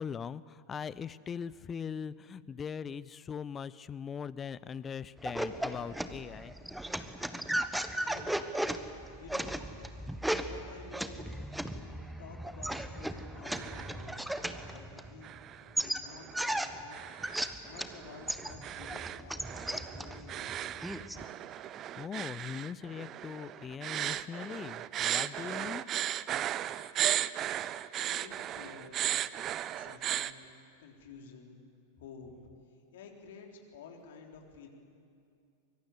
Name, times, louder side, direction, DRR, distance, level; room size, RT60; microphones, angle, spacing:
voice 1, 0.0-6.6 22.0-25.8, left 7 dB, 20° left, 20 dB, 0.6 m, -40 dB
sound 1, 5.2-15.4 15.8-18.0 18.3-21.2, right 1 dB, 5° right, 1.2 m, -36 dB
voice 2, 8.0-8.5 9.2-9.6 10.3-11.9 12.2-15.4 15.8-17.0 17.6-19.4 19.7-20.8 28.0-29.0 29.8-30.4 30.8-31.6 32.0-32.4 32.9-34.7, left 5 dB, 55° left, 2 dB, 3.7 m, -51 dB
sound 2, 13.2-14.0 14.3-14.8 15.2-30.3, right 12 dB, 30° right, 0.7 m, -36 dB
24.5 x 22.5 x 8.5 m, 2.5 s
figure-of-eight pair, 90°, 0 cm